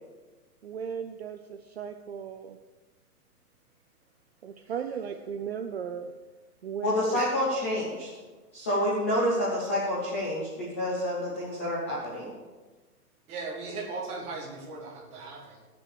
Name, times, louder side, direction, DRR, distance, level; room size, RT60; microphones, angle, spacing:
voice 1, 0.6-2.6 4.4-6.1 6.6-7.2, right 7 dB, 45° right, 6 dB, 0.6 m, -36 dB
voice 2, 6.8-8.1 8.5-12.3, left 1 dB, 10° left, -7 dB, 0.6 m, -28 dB
voice 3, 13.3-15.6, right 3 dB, 15° right, -3 dB, 1.9 m, -38 dB
16.0 x 6.2 x 6.6 m, 1.3 s
hypercardioid pair, 170°, 46 cm